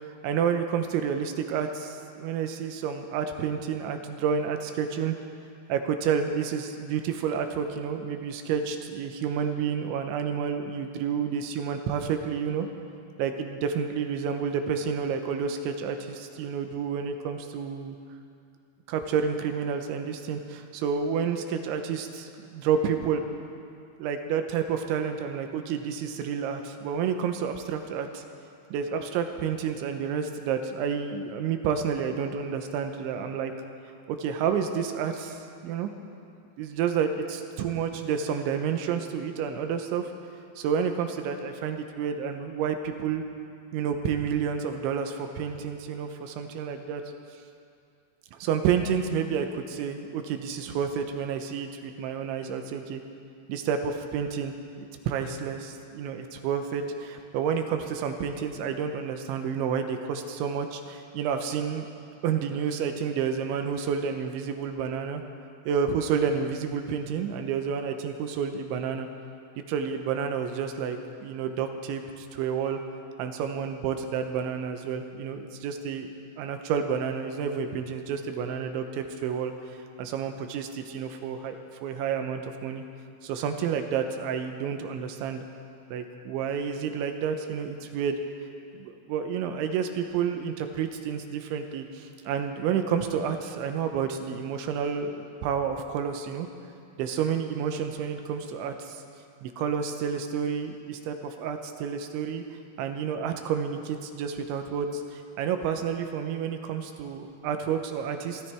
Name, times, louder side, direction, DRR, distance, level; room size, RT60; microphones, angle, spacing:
voice 1, 0.2-5.2 5.7-12.7 13.2-18.0 18.9-23.2 24.0-28.2 28.7-33.5 34.1-35.9 36.6-40.1 40.6-43.2 43.7-47.0 48.3-53.0 53.5-54.5 55.1-61.9 62.2-65.2 65.7-69.1 69.6-72.8 73.2-82.8 83.2-85.5 85.9-88.2 88.7-96.5 97.0-99.0 99.4-102.4 102.8-108.4, right 7 dB, 80° right, 6 dB, 3.1 m, -30 dB
28.5 x 13.0 x 3.5 m, 2.4 s
omnidirectional pair, 5.5 m